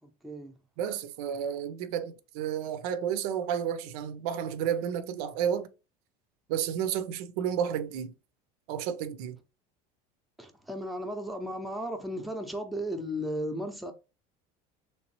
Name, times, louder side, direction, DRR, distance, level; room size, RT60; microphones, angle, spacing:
voice 1, 0.0-0.6 10.4-13.9, equal, ahead, 0.5 m, -35 dB
voice 2, 0.8-5.7 6.5-8.1 8.7-9.4, right 9 dB, 85° right, 0.5 m, -31 dB
3.2 x 3.0 x 2.9 m
cardioid pair, 140°, 19 cm